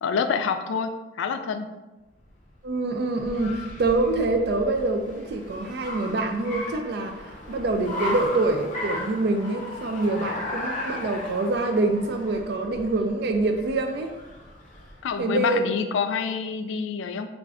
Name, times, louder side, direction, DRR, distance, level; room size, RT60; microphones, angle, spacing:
voice 1, 0.0-1.7 15.0-17.3, left 6 dB, 85° left, 8 dB, 0.3 m, -27 dB
Car, 2.2-15.1, left 1 dB, 40° left, 0.6 m, -36 dB
voice 2, 2.6-7.2 7.5-14.1 15.2-15.6, right 2 dB, 60° right, 5 dB, 0.3 m, -25 dB
3.5 x 2.5 x 3.3 m, 1.1 s
head